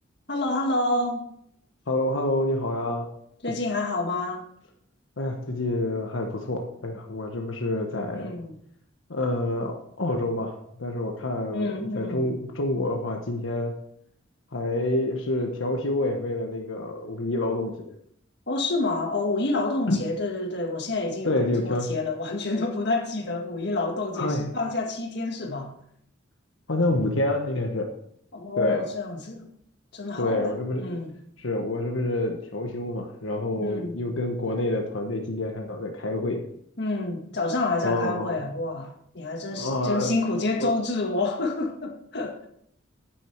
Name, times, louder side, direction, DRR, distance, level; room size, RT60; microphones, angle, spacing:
voice 1, 0.3-1.2 3.4-4.5 8.1-8.6 11.5-12.2 18.5-25.8 28.3-29.5 29.9-30.5 30.8-31.1 33.6-33.9 36.8-42.5, left 2 dB, 60° left, 1.8 m, -28 dB
voice 2, 1.9-3.1 3.5-3.6 5.2-8.3 9.1-13.7 14.5-17.9 19.9-20.0 21.3-21.9 24.1-24.4 26.7-27.9 28.6-28.8 30.2-30.8 31.4-36.5 37.8-38.4 39.5-40.1 40.6-40.7, left 1 dB, 90° left, 1.3 m, -27 dB
10.0 x 8.9 x 4.6 m
head